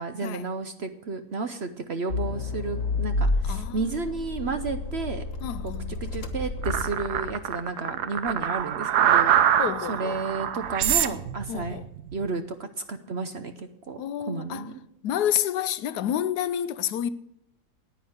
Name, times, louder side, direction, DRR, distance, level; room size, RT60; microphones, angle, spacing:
voice 1, 0.0-5.2 5.6-9.6 9.9-11.8 12.1-14.8, right 4 dB, 50° right, 0.9 m, -32 dB
Accelerating revving vroom, 2.1-7.5, left 2 dB, 50° left, 1.6 m, -30 dB
voice 2, 3.4-4.0 5.4-6.0 9.6-10.2 11.5-11.8 14.0-14.6 15.0-17.1, left 10 dB, 75° left, 1.2 m, -29 dB
sound 1, 6.6-12.2, right 9 dB, 75° right, 1.3 m, -24 dB
10.0 x 9.3 x 8.0 m
omnidirectional pair, 1.8 m